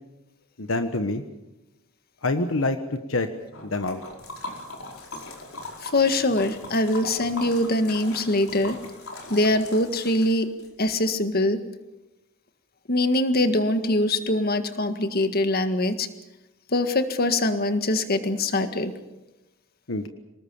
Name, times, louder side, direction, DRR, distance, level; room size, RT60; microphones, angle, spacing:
voice 1, 0.6-1.2 2.2-2.8 3.1-3.3 3.7-4.0 19.9-20.1, left 2 dB, 70° left, 8 dB, 1.3 m, -25 dB
Liquid, 3.5-10.7, left 2 dB, 85° left, 4.9 m, -40 dB
voice 2, 5.8-8.8 9.3-10.5 10.8-11.6 12.9-16.1 16.7-18.9, left 1 dB, 50° left, 8 dB, 1.8 m, -23 dB
25.0 x 20.0 x 7.2 m, 0.99 s
head